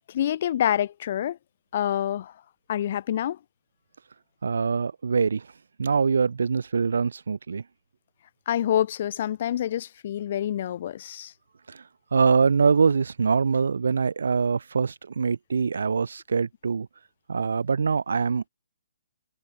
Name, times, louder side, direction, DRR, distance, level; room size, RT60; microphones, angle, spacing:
voice 1, 0.1-1.4 1.7-2.3 2.7-3.4 8.5-11.3, left 11 dB, 50° left, 2.0 m, -27 dB
voice 2, 4.4-5.5 5.8-7.6 11.7-11.8 12.1-16.9 17.3-18.5, right 5 dB, 75° right, 2.3 m, -24 dB
hypercardioid pair, 145°, 0 cm